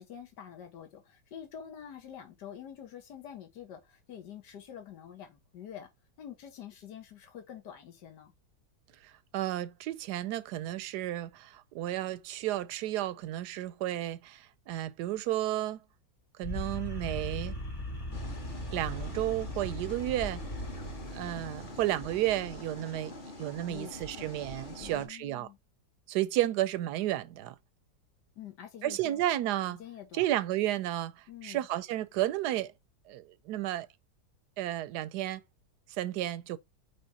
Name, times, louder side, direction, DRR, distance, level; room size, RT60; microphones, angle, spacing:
voice 1, 0.0-5.9 6.2-8.3 23.7-24.4 24.8-25.6 28.4-29.2 29.8-30.3 31.3-31.7, left 9 dB, 75° left, 2.0 m, -47 dB
voice 2, 9.0-15.8 16.4-17.6 18.7-20.4 21.1-25.5 26.1-27.6 28.8-29.8 30.1-32.7 33.1-33.9 34.6-35.4 35.9-36.6, right 14 dB, 75° right, 1.1 m, -32 dB
sound 1, 16.4-22.7, equal, 60° left, 2.6 m, -40 dB
sound 2, 18.1-25.1, left 1 dB, 30° left, 1.4 m, -43 dB
5.1 x 4.9 x 4.1 m
omnidirectional pair, 1.8 m